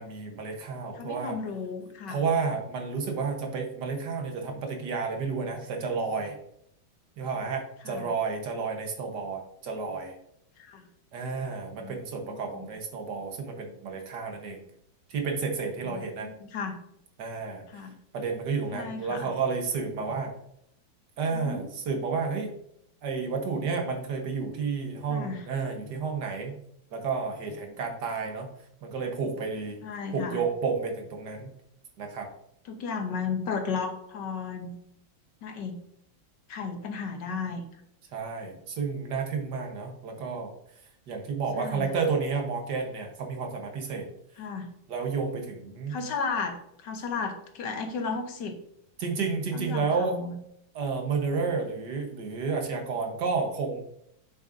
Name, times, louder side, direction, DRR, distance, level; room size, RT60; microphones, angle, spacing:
voice 1, 0.0-1.4 2.1-6.4 7.2-10.1 11.1-14.6 15.1-16.3 17.2-17.8 18.1-20.3 21.2-22.5 23.0-26.6 26.9-28.5 28.8-29.8 30.1-31.5 32.0-32.3 38.1-40.5 41.1-44.1 44.9-46.0 49.0-50.1 50.7-53.8, right 5 dB, 65° right, 3 dB, 1.7 m, -31 dB
voice 2, 1.0-2.2 7.8-8.1 10.6-10.8 11.8-12.0 12.3-12.7 15.9-16.8 17.7-17.9 18.7-19.3 21.3-21.6 25.1-25.4 29.8-30.4 32.7-34.8 35.4-35.8 36.5-37.6 41.6-42.0 44.4-44.7 45.9-48.6 49.5-50.3, left 5 dB, 70° left, 6 dB, 1.5 m, -34 dB
7.7 x 6.6 x 2.6 m, 0.74 s
omnidirectional pair, 2.1 m